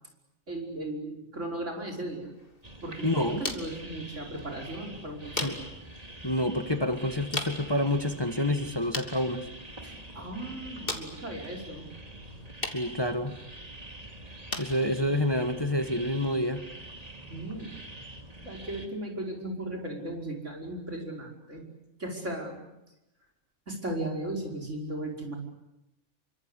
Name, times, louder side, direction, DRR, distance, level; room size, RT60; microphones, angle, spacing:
voice 1, 0.5-2.3 2.8-5.5 9.8-11.9 17.3-17.9 18.4-21.6 22.0-22.6 23.7-25.3, right 1 dB, 65° right, 0 dB, 5.9 m, -36 dB
sound 1, 2.2-17.2, left 2 dB, 45° left, 3.2 m, -42 dB
sound 2, 2.6-18.9, right 1 dB, 30° right, 2.7 m, -45 dB
voice 2, 3.0-3.4 5.4-5.6 6.2-9.5 12.7-13.3 14.6-16.6, left 1 dB, 20° left, 7 dB, 1.5 m, -28 dB
28.5 x 24.5 x 8.3 m, 0.91 s
omnidirectional pair, 1.3 m